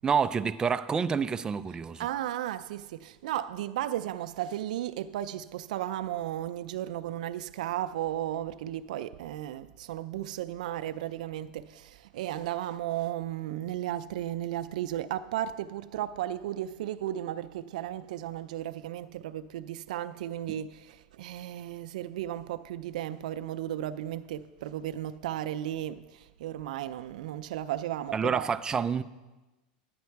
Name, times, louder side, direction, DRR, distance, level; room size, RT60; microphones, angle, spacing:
voice 1, 0.0-2.1 28.1-29.0, right 6 dB, 20° right, 0.4 m, -28 dB
voice 2, 2.0-26.0 26.4-28.5, right 12 dB, 85° right, 0.4 m, -34 dB
10.5 x 9.5 x 4.6 m
supercardioid pair, 130°, 4 cm